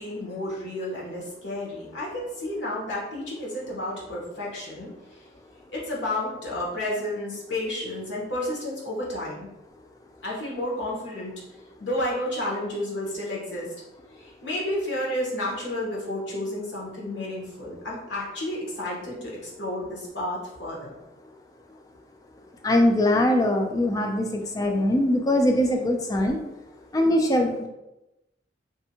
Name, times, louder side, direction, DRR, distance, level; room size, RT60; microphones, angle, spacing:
voice 1, 0.0-5.2 5.7-9.5 10.2-11.3 11.8-13.7 14.1-20.9, left 1 dB, 80° left, -4 dB, 1.0 m, -31 dB
voice 2, 22.6-26.4 26.9-27.7, left 1 dB, 20° left, 3 dB, 0.3 m, -22 dB
2.6 x 2.5 x 2.7 m, 0.93 s
head